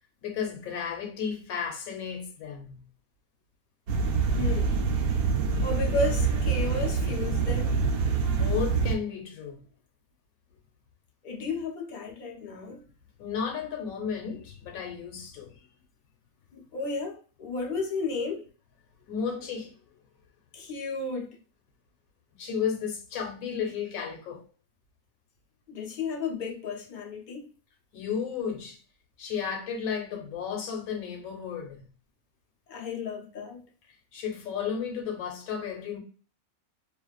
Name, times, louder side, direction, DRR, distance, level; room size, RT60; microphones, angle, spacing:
voice 1, 0.2-2.8 8.3-9.6 13.2-15.6 19.1-19.7 22.4-24.4 27.9-28.8 29.2-31.8 34.1-36.0, left 7 dB, 75° left, 1.1 m, -33 dB
sound 1, 3.9-8.9, right 4 dB, 85° right, 1.1 m, -26 dB
voice 2, 4.3-4.8 5.6-7.8 11.2-12.8 16.5-18.4 20.5-21.4 25.7-27.5 32.7-33.6, left 3 dB, 55° left, 0.5 m, -33 dB
2.5 x 2.4 x 2.3 m
omnidirectional pair, 1.5 m